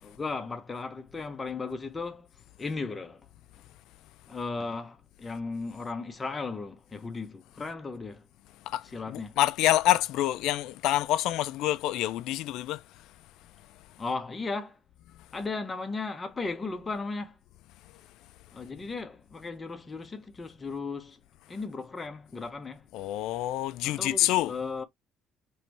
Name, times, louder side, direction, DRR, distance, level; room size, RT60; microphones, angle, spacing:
voice 1, 0.0-2.3 2.6-3.3 4.3-8.2 8.9-9.3 14.0-14.8 15.3-17.4 18.5-21.2 21.5-22.9 23.8-24.8, left 4 dB, 15° left, 0.7 m, -36 dB
voice 2, 8.7-12.8 22.9-24.5, left 14 dB, 75° left, 0.4 m, -27 dB
3.1 x 2.9 x 4.5 m
cardioid pair, 175°, 0 cm